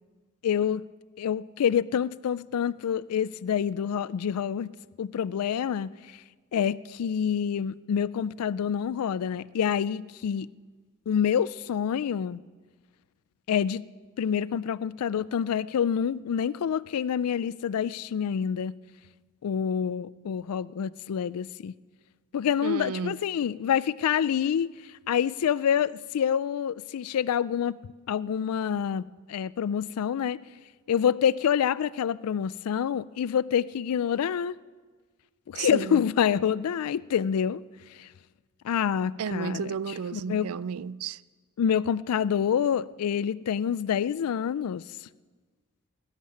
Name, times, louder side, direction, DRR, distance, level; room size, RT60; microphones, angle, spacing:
voice 1, 0.4-0.8 1.2-4.7 5.0-5.9 6.5-10.5 11.1-12.4 13.5-13.8 14.2-18.7 19.4-21.7 22.3-24.7 25.1-27.8 28.1-29.0 29.3-30.4 30.9-34.6 35.5-37.6 38.0-38.1 38.6-39.7 40.1-40.5 41.6-44.8, left 8 dB, 80° left, 0.4 m, -27 dB
voice 2, 22.6-23.2 35.6-36.1 39.2-41.2, right 6 dB, 70° right, 0.4 m, -33 dB
19.5 x 7.4 x 9.6 m
head